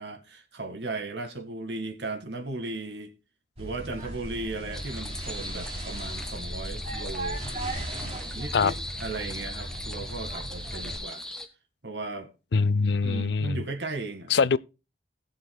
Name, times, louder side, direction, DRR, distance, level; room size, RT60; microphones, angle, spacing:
voice 1, 0.0-3.1 3.6-7.4 8.3-11.2 11.8-12.3 13.0-14.5, right 2 dB, 75° right, 1.9 m, -36 dB
sound 1, 3.6-11.0, right 1 dB, 35° right, 3.3 m, -37 dB
sound 2, 4.7-11.5, left 1 dB, 5° left, 1.0 m, -39 dB
voice 2, 12.5-13.6 14.3-14.6, left 5 dB, 75° left, 0.5 m, -23 dB
20.0 x 7.0 x 2.3 m
head